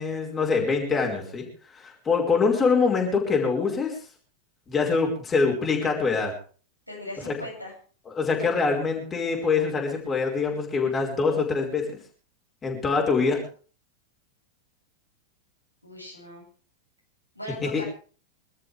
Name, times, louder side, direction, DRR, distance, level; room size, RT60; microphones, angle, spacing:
voice 1, 0.0-1.4 1.7-4.0 4.7-6.3 7.3-7.4 8.0-11.8 12.6-13.4 17.6-17.8, left 4 dB, 20° left, 1 dB, 5.1 m, -24 dB
voice 2, 6.9-7.7 15.8-16.4 17.3-17.8, left 1 dB, 90° left, -3 dB, 7.7 m, -38 dB
25.5 x 13.0 x 3.5 m, 0.40 s
figure-of-eight pair, 90°, 0 cm